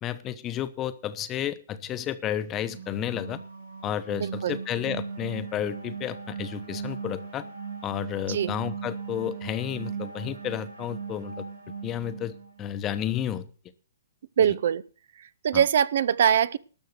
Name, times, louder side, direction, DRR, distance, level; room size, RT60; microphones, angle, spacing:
voice 1, 0.0-3.4 3.8-7.4 7.8-11.5 11.8-13.5 15.5-15.6, left 10 dB, 20° left, 13 dB, 0.9 m, -32 dB
sound 1, 2.3-12.8, right 5 dB, 80° right, 3.5 m, -38 dB
voice 2, 4.2-4.6 8.3-8.5 14.4-14.8 15.2-16.6, right 9 dB, 60° right, 20 dB, 0.5 m, -23 dB
12.5 x 6.3 x 8.0 m, 0.40 s
hypercardioid pair, 145°, 0 cm